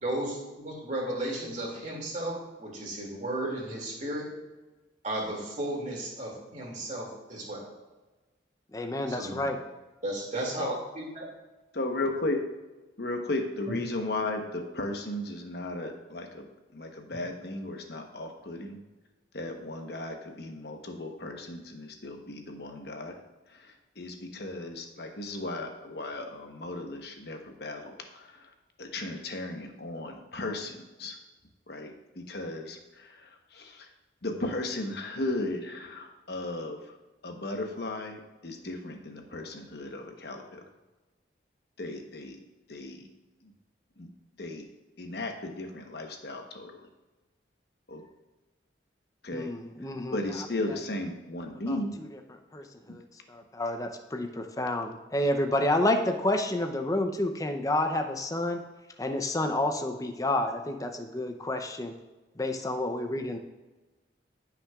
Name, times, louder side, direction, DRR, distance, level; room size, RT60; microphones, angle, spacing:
voice 1, 0.0-4.3 5.0-7.7 9.1-9.4 10.0-11.2 13.7-13.8, right 1 dB, 40° right, -2 dB, 2.4 m, -34 dB
voice 2, 8.7-9.6 49.3-50.2 50.7-50.8 51.7-51.8 52.1-52.2 52.5-58.6 59.0-61.9 62.4-63.4, left 1 dB, 20° left, 5 dB, 0.6 m, -29 dB
voice 3, 11.8-12.4 13.0-16.5 16.7-18.8 19.3-23.2 23.5-28.5 28.8-31.2 31.7-33.9 34.2-37.0 37.2-40.6 41.8-42.4 42.7-43.1 43.4-43.5 44.0-44.1 44.4-44.6 45.0-46.7 47.9-48.0 49.2-49.5 50.1-52.0, left 2 dB, 60° left, 3 dB, 1.1 m, -35 dB
15.5 x 5.9 x 2.4 m, 1.2 s
head